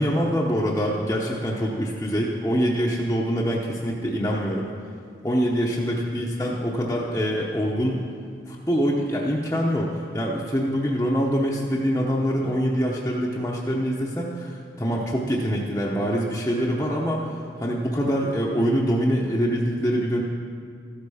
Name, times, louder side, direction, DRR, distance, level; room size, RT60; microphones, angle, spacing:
voice 1, 0.0-4.7 5.2-8.0 8.5-17.3 17.6-20.2, equal, 15° left, -5 dB, 0.8 m, -24 dB
13.5 x 8.3 x 5.6 m, 2.2 s
head